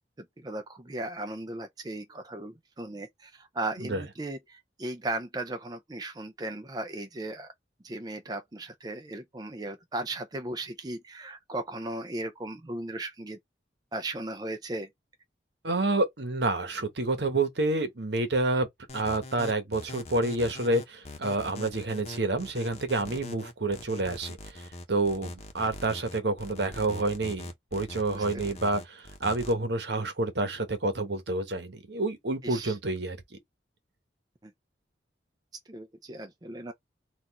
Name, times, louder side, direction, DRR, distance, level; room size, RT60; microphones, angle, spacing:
voice 1, 0.2-7.5 7.8-13.4 13.9-14.9 28.1-28.5 32.4-32.8 34.4-34.5 35.7-36.7, right 2 dB, 20° right, 0.5 m, -37 dB
voice 2, 15.6-18.7 18.9-33.2, right 2 dB, 70° right, 1.1 m, -29 dB
sound 1, 18.9-29.5, left 2 dB, 35° left, 0.9 m, -42 dB
4.2 x 2.5 x 4.1 m
head